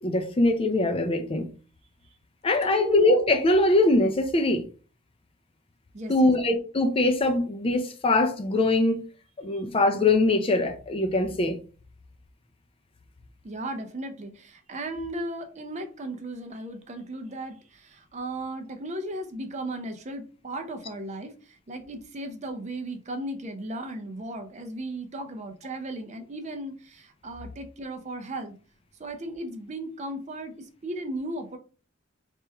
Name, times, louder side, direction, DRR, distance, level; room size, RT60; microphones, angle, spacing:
voice 1, 0.0-1.5 2.4-4.7 6.1-9.0 9.4-11.6, left 2 dB, 25° left, 0.4 m, -22 dB
voice 2, 2.6-3.0 5.9-6.3 9.5-9.6 13.4-28.6 29.0-31.6, right 1 dB, 35° right, 0.5 m, -36 dB
3.3 x 2.9 x 3.3 m
head